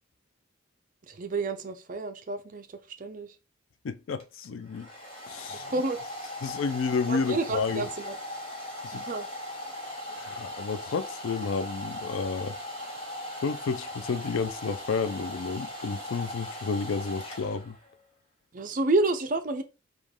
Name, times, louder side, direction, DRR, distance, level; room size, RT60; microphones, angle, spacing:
voice 1, 1.0-3.4 5.6-6.0 7.1-8.2 8.9-9.3 18.5-19.6, right 2 dB, 45° right, 0.5 m, -29 dB
voice 2, 3.8-4.9 5.3-5.7 6.4-7.9 8.8-9.0 10.1-12.5 13.4-17.8, left 5 dB, 85° left, 0.4 m, -31 dB
Domestic sounds home sounds, 4.2-17.9, left 1 dB, 30° left, 1.1 m, -39 dB
5.1 x 2.4 x 3.5 m
head